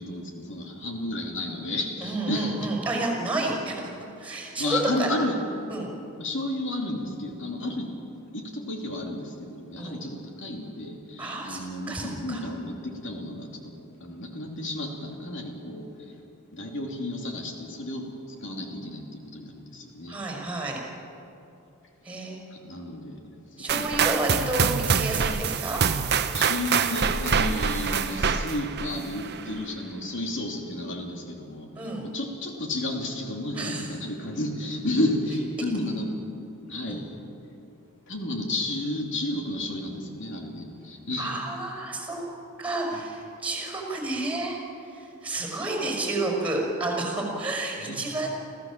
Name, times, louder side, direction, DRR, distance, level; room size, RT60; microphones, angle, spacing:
voice 1, 0.0-2.6 4.6-5.4 6.2-7.9 8.3-13.7 14.0-15.9 16.5-18.0 18.4-20.2 22.5-23.3 23.7-24.0 24.6-24.7 26.3-31.7 32.0-36.1 36.7-37.2 38.1-41.3 42.9-43.0 47.8-48.0, left 1 dB, 60° left, 2 dB, 3.0 m, -32 dB
voice 2, 2.0-3.8 4.2-5.1 5.7-5.9 7.6-7.7 9.8-10.1 11.2-12.4 20.1-20.8 22.0-22.4 23.6-25.8 31.8-32.1 33.5-33.9 36.9-37.0 41.2-44.6 44.9-48.3, right 2 dB, 5° right, 0 dB, 5.5 m, -30 dB
sound 1, 23.7-29.5, right 6 dB, 50° right, 0.7 m, -25 dB
27.5 x 15.0 x 7.5 m, 2.8 s
head